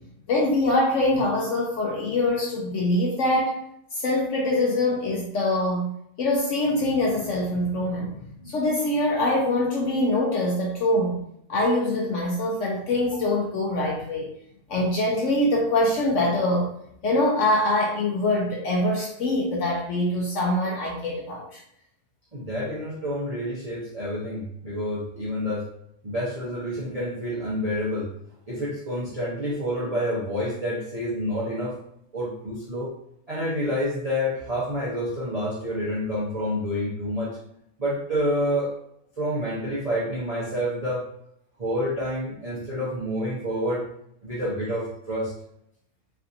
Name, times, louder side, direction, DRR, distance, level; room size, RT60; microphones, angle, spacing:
voice 1, 0.3-3.6 3.9-5.9 6.2-8.2 8.5-11.2 11.5-14.3 14.7-16.7 17.0-21.6, left 1 dB, 65° left, -2 dB, 0.8 m, -24 dB
voice 2, 22.3-25.7 26.0-28.1 28.5-31.7 32.1-32.9 33.3-37.4 37.8-38.7 39.2-41.1 41.6-43.9 44.2-45.3, equal, 40° right, -8 dB, 0.6 m, -28 dB
3.3 x 2.6 x 2.6 m, 0.73 s
omnidirectional pair, 1.7 m